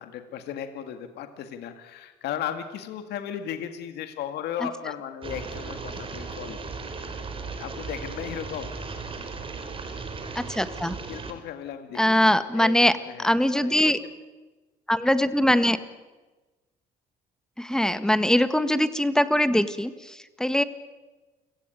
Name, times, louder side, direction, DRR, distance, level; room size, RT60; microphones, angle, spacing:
voice 1, 0.0-6.6 7.6-8.7 11.1-13.7, left 9 dB, 75° left, 7 dB, 2.1 m, -36 dB
sound 1, 5.2-11.3, right 4 dB, 30° right, 3.9 m, -36 dB
voice 2, 10.3-10.9 12.0-12.9 13.2-14.0 14.9-15.8 17.6-20.6, left 1 dB, 5° left, 11 dB, 1.6 m, -22 dB
29.0 x 17.5 x 9.2 m, 1.2 s
cardioid pair, 110°, 17 cm